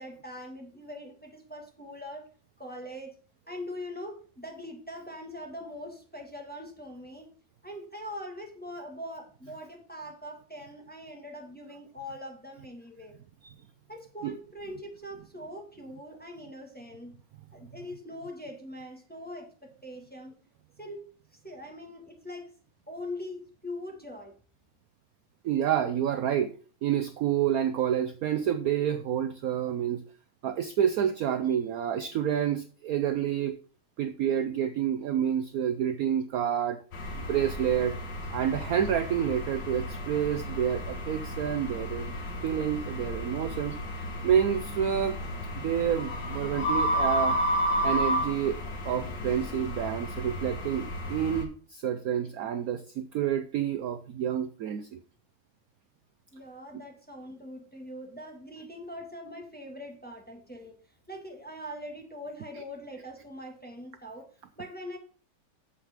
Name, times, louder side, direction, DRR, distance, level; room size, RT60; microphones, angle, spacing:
voice 1, 0.0-2.3 2.6-3.1 3.5-7.3 7.6-13.2 13.9-17.1 17.5-20.3 20.8-22.5 22.9-24.4 56.3-60.8 61.1-64.3 64.5-65.0, left 1 dB, 5° left, 1 dB, 1.3 m, -42 dB
voice 2, 25.4-26.5 26.8-30.1 30.4-33.6 34.0-36.8 37.1-38.0 38.3-42.1 42.4-43.8 44.2-45.2 45.6-47.4 47.8-55.0, right 9 dB, 75° right, 10 dB, 0.8 m, -28 dB
sound 1, 36.9-51.4, equal, 60° left, 2.0 m, -32 dB
9.1 x 7.3 x 3.5 m, 0.41 s
omnidirectional pair, 2.2 m